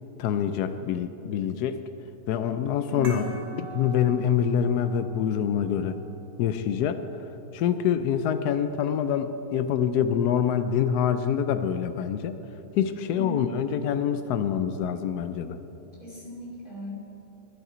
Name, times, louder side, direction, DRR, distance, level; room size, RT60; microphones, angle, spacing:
voice 1, 0.2-1.8 2.3-3.3 3.7-6.0 6.4-7.0 7.5-12.4 12.8-15.6, left 8 dB, 85° left, 10 dB, 0.8 m, -25 dB
voice 2, 2.9-3.3 13.1-13.5 16.0-17.0, left 2 dB, 25° left, -6 dB, 2.9 m, -35 dB
sound 1, 3.0-8.1, right 3 dB, 45° right, 1.8 m, -46 dB
12.0 x 11.0 x 5.0 m, 3.0 s
omnidirectional pair, 2.2 m